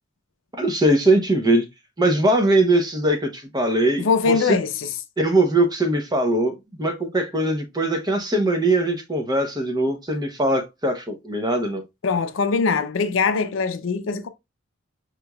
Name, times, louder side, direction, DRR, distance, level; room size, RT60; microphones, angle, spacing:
voice 1, 0.6-1.6 2.0-4.6 5.2-11.8, right 1 dB, 20° right, 0.7 m, -21 dB
voice 2, 4.0-4.9 12.0-14.3, left 5 dB, 75° left, 0.5 m, -22 dB
5.0 x 3.0 x 2.3 m
head